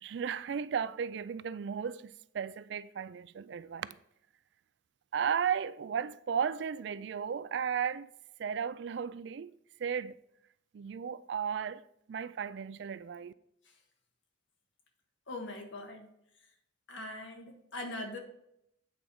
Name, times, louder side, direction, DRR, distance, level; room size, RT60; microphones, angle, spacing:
voice 1, 0.0-4.0 5.1-8.1 8.4-9.5 9.8-10.1 10.7-11.8 12.1-13.3, right 7 dB, 65° right, 0.3 m, -35 dB
voice 2, 15.3-16.1 16.9-18.2, left 2 dB, 75° left, 1.5 m, -41 dB
8.4 x 4.5 x 5.3 m
head